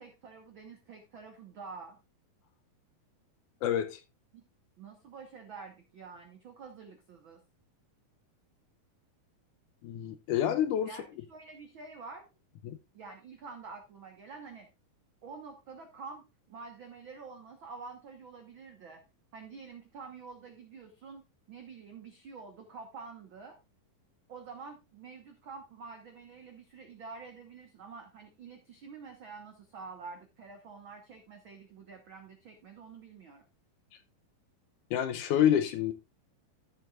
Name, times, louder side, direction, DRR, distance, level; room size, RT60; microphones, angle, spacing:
voice 1, 0.0-2.0 4.3-4.4 4.8-7.4 10.8-12.3 12.9-14.7 15.2-19.0 19.3-23.6 24.3-33.4, right 4 dB, 80° right, 1.1 m, -48 dB
voice 2, 3.6-4.0 9.8-10.9 12.6-12.8 34.9-35.9, left 10 dB, 75° left, 1.9 m, -28 dB
14.0 x 7.2 x 2.4 m
omnidirectional pair, 4.1 m